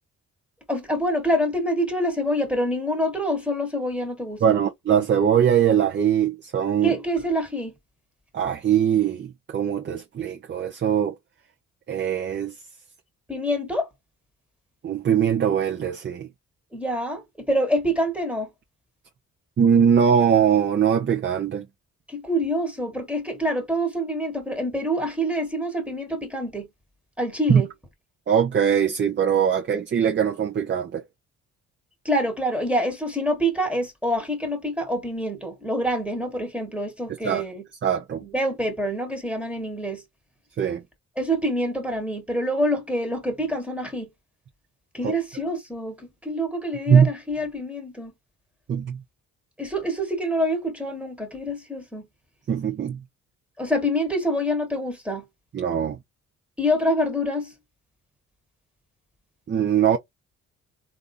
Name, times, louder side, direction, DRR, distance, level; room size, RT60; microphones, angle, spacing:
voice 1, 0.7-4.6 6.8-7.7 13.3-13.9 16.7-18.5 22.1-26.7 27.2-27.7 32.0-37.6 38.2-40.0 41.2-44.1 44.9-48.1 49.6-52.1 53.6-55.2 56.6-57.5, equal, 5° right, 1.2 m, -26 dB
voice 2, 4.4-7.0 8.3-11.1 11.9-12.6 14.8-16.3 19.6-21.7 27.5-27.6 28.3-31.0 37.2-37.4 37.8-38.2 40.6-40.8 45.0-45.1 46.9-47.1 48.7-49.0 52.5-53.0 55.5-56.0 59.5-60.0, right 8 dB, 40° right, 0.6 m, -21 dB
3.4 x 2.6 x 2.5 m
cardioid pair, 90°, 30 cm